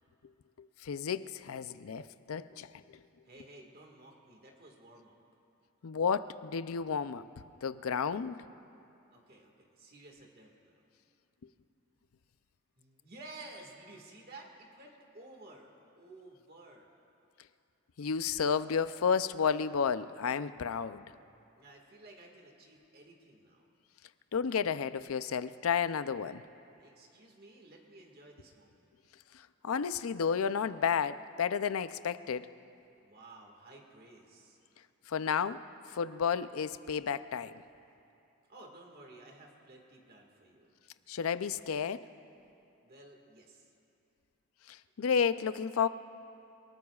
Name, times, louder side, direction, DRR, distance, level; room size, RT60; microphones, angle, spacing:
voice 1, 0.8-2.7 5.8-7.2 7.6-8.4 18.0-21.0 24.3-26.4 29.6-32.5 35.1-35.6 35.9-37.5 41.1-42.0 44.7-45.9, left 6 dB, 85° left, 0.5 m, -31 dB
voice 2, 3.2-5.2 9.1-10.8 12.8-17.0 21.6-23.7 26.8-28.9 33.0-34.6 38.5-40.7 42.8-43.7, right 2 dB, 45° right, 1.8 m, -54 dB
30.0 x 19.0 x 2.4 m
head